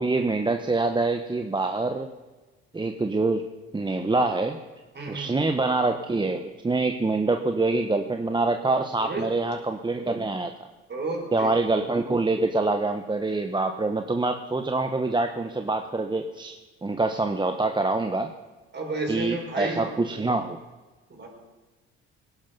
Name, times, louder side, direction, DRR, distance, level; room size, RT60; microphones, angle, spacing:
voice 1, 0.0-2.1 2.7-3.4 3.7-4.6 5.1-10.5 11.3-16.6 16.8-18.3 19.1-20.6, right 3 dB, 15° right, 6 dB, 1.0 m, -25 dB
voice 2, 4.9-5.3 9.0-9.3 10.9-11.6 18.7-19.8 21.1-21.3, right 2 dB, 35° right, 0 dB, 5.5 m, -31 dB
19.5 x 11.5 x 5.4 m, 1.2 s
supercardioid pair, 75°, 29 cm